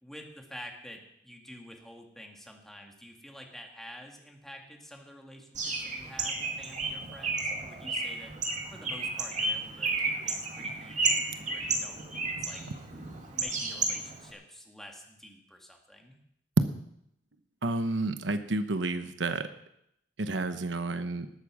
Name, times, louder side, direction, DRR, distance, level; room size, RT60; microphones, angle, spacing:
voice 1, 0.0-8.3 8.7-12.6 13.3-16.2, equal, ahead, 2 dB, 2.1 m, -48 dB
Bird, 5.5-14.3, right 3 dB, 45° right, 2.3 m, -32 dB
voice 2, 17.6-19.5 20.2-21.3, right 2 dB, 85° right, 10 dB, 1.0 m, -29 dB
19.0 x 8.5 x 6.3 m, 0.76 s
head